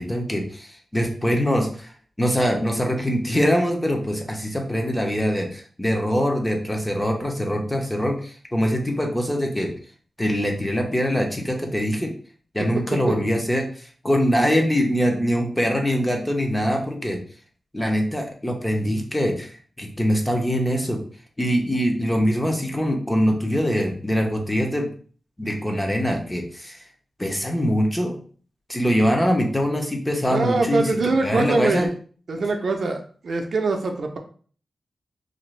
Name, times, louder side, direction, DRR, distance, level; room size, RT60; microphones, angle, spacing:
voice 1, 0.0-1.9 2.2-9.7 10.2-12.1 12.5-17.2 17.7-19.5 19.8-21.0 21.4-24.9 25.4-26.8 27.2-28.2 28.7-31.9, equal, 10° left, 1 dB, 0.5 m, -23 dB
voice 2, 30.3-31.9 32.3-34.2, right 3 dB, 55° right, 4 dB, 0.4 m, -23 dB
2.7 x 2.5 x 3.1 m, 0.44 s
wide cardioid pair, 155°, 0 cm